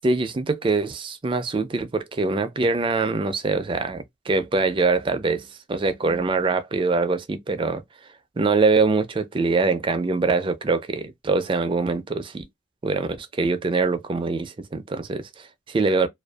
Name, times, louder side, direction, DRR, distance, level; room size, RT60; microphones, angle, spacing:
voice 1, 0.0-7.8 8.4-12.5 12.8-16.1, right 3 dB, 25° right, 0.3 m, -23 dB
2.5 x 2.2 x 2.2 m
head